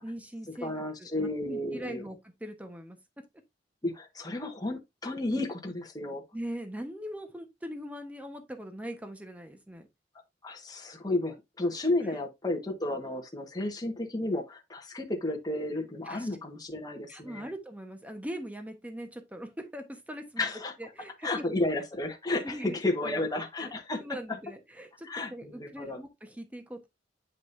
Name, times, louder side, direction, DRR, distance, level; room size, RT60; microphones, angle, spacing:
voice 1, 0.0-0.7 1.0-3.0 6.3-9.9 12.1-12.2 16.0-16.3 17.1-20.4 20.8-21.3 22.4-22.8 23.0-23.2 23.6-23.7 24.0-26.9, equal, 10° right, 1.2 m, -41 dB
voice 2, 0.6-2.0 3.8-6.2 10.4-17.5 20.4-20.7 21.2-24.0 25.0-26.0, left 2 dB, 20° left, 1.4 m, -32 dB
8.3 x 5.3 x 2.7 m
head